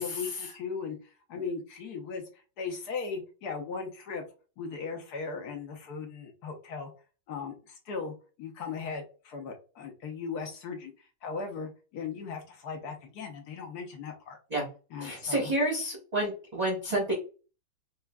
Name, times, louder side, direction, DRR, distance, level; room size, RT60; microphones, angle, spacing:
voice 1, 0.0-2.2 2.6-4.2 4.6-6.9 7.3-14.4 14.9-15.5, left 5 dB, 65° left, 3 dB, 1.1 m, -38 dB
voice 2, 15.0-17.1, right 1 dB, 30° right, -3 dB, 0.8 m, -29 dB
4.5 x 2.4 x 2.3 m, 0.34 s
omnidirectional pair, 2.0 m